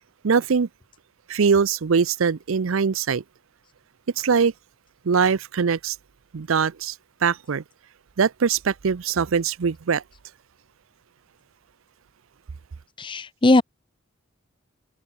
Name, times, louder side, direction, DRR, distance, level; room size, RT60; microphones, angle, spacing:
voice 1, 0.2-0.7 1.3-3.2 4.2-4.5 5.1-6.0 6.3-6.9 7.2-7.6 8.2-10.0, right 6 dB, 85° right, 0.5 m, -22 dB
voice 2, 13.0-13.6, left 2 dB, 25° left, 0.6 m, -18 dB
head